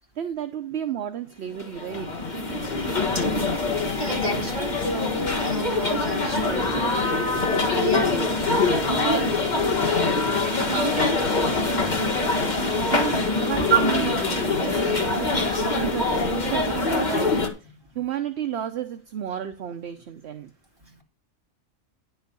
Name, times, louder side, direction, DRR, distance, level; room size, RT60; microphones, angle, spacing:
voice 1, 0.1-2.2 12.9-20.5, right 10 dB, 60° right, 0.9 m, -32 dB
sound 1, 1.5-17.5, left 3 dB, 35° left, 1.6 m, -24 dB
voice 2, 4.0-6.9 7.2-8.2 10.6-11.1 11.6-11.7 13.7-13.8, right 3 dB, 20° right, 3.4 m, -28 dB
10.5 x 4.5 x 6.8 m
omnidirectional pair, 1.4 m